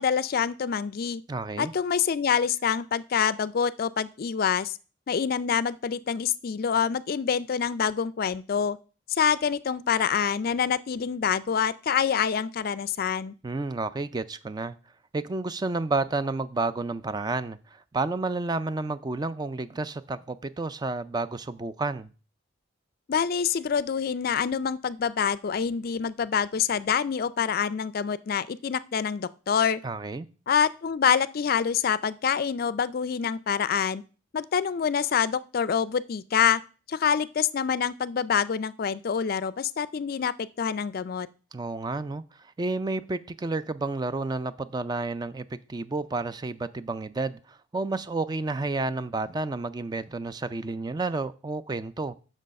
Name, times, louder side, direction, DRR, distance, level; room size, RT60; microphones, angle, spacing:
voice 1, 0.0-1.2 1.6-4.7 5.1-8.8 9.1-13.3 23.1-29.8 30.5-34.0 34.3-36.6 36.9-41.3, left 7 dB, 50° left, 0.4 m, -26 dB
voice 2, 1.3-1.7 13.4-14.8 15.1-22.1 29.8-30.3 41.5-52.1, right 3 dB, 20° right, 0.3 m, -31 dB
7.7 x 6.3 x 5.2 m
head